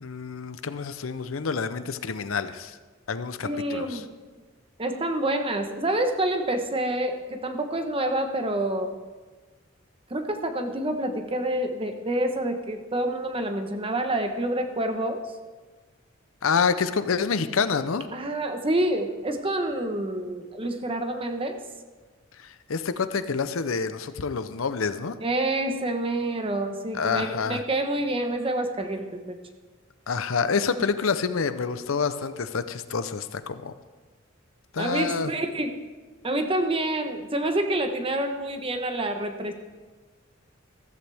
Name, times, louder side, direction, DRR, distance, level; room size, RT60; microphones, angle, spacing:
voice 1, 0.0-2.8 3.1-4.0 16.4-18.0 22.4-25.1 26.9-27.6 30.1-33.7 34.7-35.3, left 5 dB, 85° left, 12 dB, 0.7 m, -27 dB
voice 2, 3.4-4.1 4.8-8.9 10.1-15.2 18.1-21.6 25.2-29.4 34.8-35.7 36.2-39.5, right 1 dB, 25° right, 6 dB, 1.1 m, -27 dB
14.5 x 14.5 x 3.5 m, 1.3 s
head